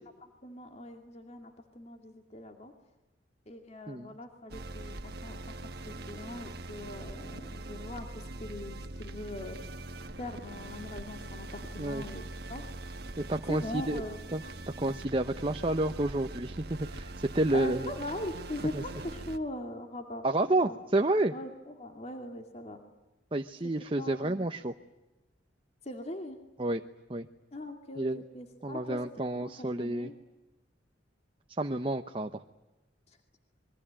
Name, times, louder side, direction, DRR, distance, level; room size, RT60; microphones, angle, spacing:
voice 1, 0.2-2.7 3.5-5.5 6.1-9.6 10.2-12.2 12.5-12.6 13.5-14.2 17.5-20.8 21.3-22.8 24.0-24.5 25.8-26.4 27.5-30.1 33.1-33.2, left 1 dB, 35° left, 5 dB, 2.4 m, -41 dB
sound 1, 4.5-19.4, right 2 dB, 55° right, 1.4 m, -42 dB
voice 2, 13.2-14.0 14.3-14.4 14.8-17.9 18.7-18.8 20.2-21.3 23.3-24.7 26.6-26.8 27.1-27.3 28.0-28.2 28.6-30.1 31.6-32.4, right 2 dB, 30° right, 6 dB, 0.9 m, -30 dB
28.0 x 22.5 x 8.8 m, 1.0 s
head